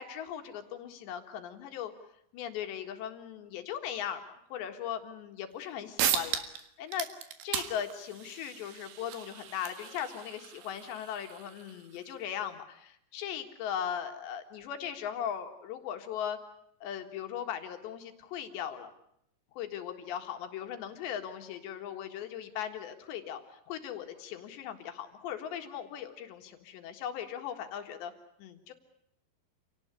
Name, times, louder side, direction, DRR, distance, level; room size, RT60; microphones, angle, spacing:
voice 1, 0.0-1.9 2.3-7.1 7.4-16.4 16.8-18.9 19.6-28.1 28.4-28.7, left 9 dB, 80° left, 6 dB, 3.9 m, -38 dB
sound 1, 5.6-5.7 6.0-6.6 6.9-12.0, right 10 dB, 85° right, 4.1 m, -36 dB
28.0 x 18.0 x 9.8 m, 0.75 s
omnidirectional pair, 5.0 m